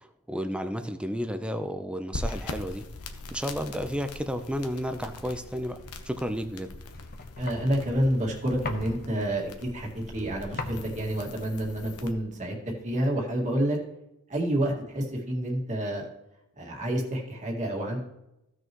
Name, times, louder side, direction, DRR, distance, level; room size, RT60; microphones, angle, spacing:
voice 1, 0.0-2.8 3.3-5.8 6.1-6.7, equal, 5° right, 8 dB, 0.6 m, -32 dB
sound 1, 2.1-12.1, left 2 dB, 85° left, 1.1 m, -41 dB
sound 2, 4.9-13.0, left 3 dB, 45° left, 1.0 m, -43 dB
voice 2, 7.4-12.5 12.8-13.8 14.3-16.0 16.6-18.0, right 1 dB, 35° right, -1 dB, 2.0 m, -28 dB
15.5 x 6.4 x 3.0 m, 0.88 s
head